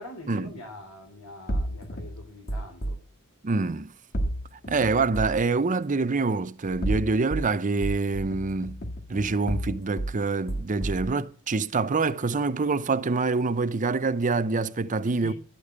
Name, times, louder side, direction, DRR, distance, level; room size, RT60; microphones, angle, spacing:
voice 1, 0.0-3.0 15.1-15.3, left 2 dB, 85° left, 3.9 m, -43 dB
sound 1, 1.5-3.0 4.1-5.5 6.6-7.5 7.8-10.2 10.5-11.1, right 1 dB, 45° left, 1.8 m, -31 dB
voice 2, 3.4-3.9 4.7-8.8 9.1-15.3, right 3 dB, 35° right, 0.6 m, -26 dB
12.0 x 6.7 x 8.7 m
head